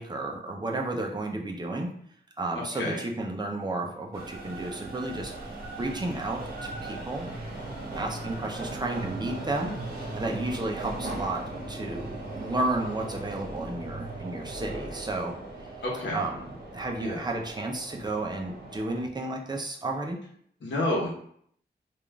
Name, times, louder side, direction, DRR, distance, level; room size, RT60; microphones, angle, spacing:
voice 1, 0.0-1.9 2.4-5.3 5.8-7.3 8.0-9.7 10.1-15.3 16.1-20.2, right 2 dB, 25° right, 1 dB, 0.6 m, -32 dB
voice 2, 2.5-3.0 15.8-16.3 17.0-17.2 20.6-21.1, left 1 dB, 80° left, -3 dB, 1.0 m, -30 dB
sound 1, 4.1-19.0, right 2 dB, 55° right, 1.1 m, -38 dB
3.5 x 2.5 x 3.4 m, 0.64 s
wide cardioid pair, 105°, 19 cm